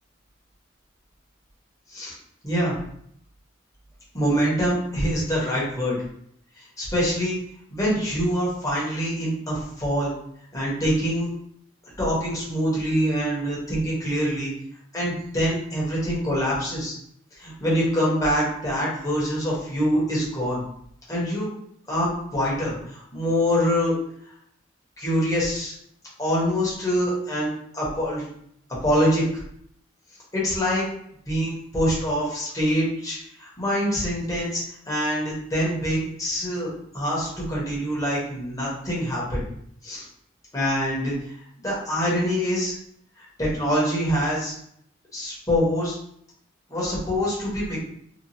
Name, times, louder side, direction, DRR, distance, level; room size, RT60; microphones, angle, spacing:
voice 1, 2.4-2.7 4.1-6.0 6.6-7.4 7.7-10.1 10.5-11.3 12.0-14.5 14.9-16.9 17.3-20.6 21.1-21.5 21.9-23.9 25.0-25.7 26.2-27.5 27.7-28.3 28.8-29.2 30.3-30.8 31.3-39.5 39.8-40.1 40.5-41.4 41.6-42.7 43.4-44.6 45.1-46.0 46.7-47.8, equal, 15° left, -6 dB, 1.0 m, -25 dB
2.8 x 2.4 x 2.6 m, 0.70 s
head